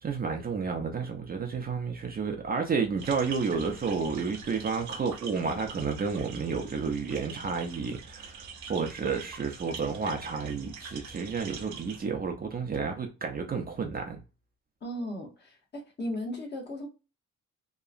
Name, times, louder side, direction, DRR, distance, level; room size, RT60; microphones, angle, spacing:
voice 1, 0.0-14.2, right 5 dB, 30° right, 0.5 m, -31 dB
sound 1, 3.0-12.1, right 5 dB, 70° right, 0.7 m, -44 dB
voice 2, 14.8-16.9, left 1 dB, 35° left, 1.0 m, -36 dB
2.9 x 2.2 x 2.4 m
cardioid pair, 90°, 30 cm